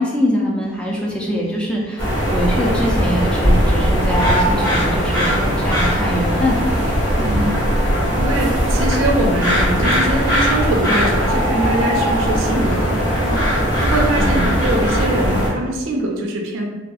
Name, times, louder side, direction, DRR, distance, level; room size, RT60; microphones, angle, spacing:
voice 1, 0.0-6.6 14.2-14.4, equal, 5° left, -3 dB, 0.3 m, -23 dB
Bird, 1.2-1.7 2.1-2.2 2.4-3.6 3.9-5.7 6.6-6.7 7.3-7.4 7.6-7.7 8.4-8.8 9.8-9.9 10.2-10.3 10.6-12.8 13.2-13.5 13.8-15.2 15.5-15.8, right 1 dB, 65° left, 1.0 m, -26 dB
sound 1, 2.0-15.5, equal, 20° left, 0.9 m, -19 dB
Bass drum, 3.4-5.1, equal, 85° left, 1.4 m, -21 dB
voice 2, 7.2-16.7, right 1 dB, 80° right, 0 dB, 0.5 m, -23 dB
2.6 x 2.3 x 2.3 m, 1.2 s
head